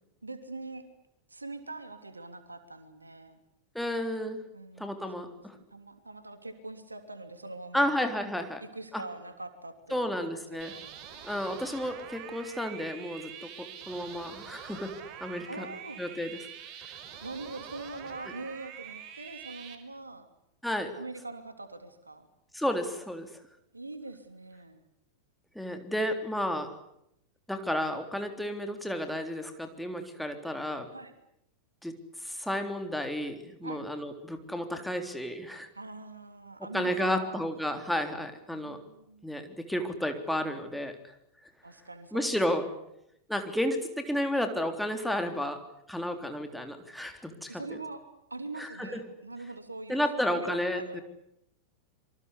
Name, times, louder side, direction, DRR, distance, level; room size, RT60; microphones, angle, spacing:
voice 1, 0.2-0.9 1.3-3.4 4.5-8.0 8.6-10.1 10.5-10.9 15.5-16.0 17.2-20.3 21.0-22.3 23.7-24.8 30.9-31.1 33.6-33.9 35.7-37.5 38.5-39.3 41.6-42.8 47.5-51.0, right 2 dB, 80° right, 9 dB, 3.0 m, -43 dB
voice 2, 3.8-4.4 4.8-5.6 7.7-8.6 8.9-9.0 9.9-10.7 11.2-15.7 16.0-16.4 20.6-21.0 22.5-23.3 25.6-26.7 27.5-30.9 31.8-35.7 36.7-38.8 39.2-41.0 42.1-42.7 43.3-45.6 45.9-47.6 48.6-49.0 49.9-51.0, equal, ahead, 5 dB, 3.6 m, -32 dB
sound 1, 10.6-19.8, right 8 dB, 40° right, 4.6 m, -45 dB
27.0 x 24.5 x 8.3 m, 0.78 s
figure-of-eight pair, 90°, 0 cm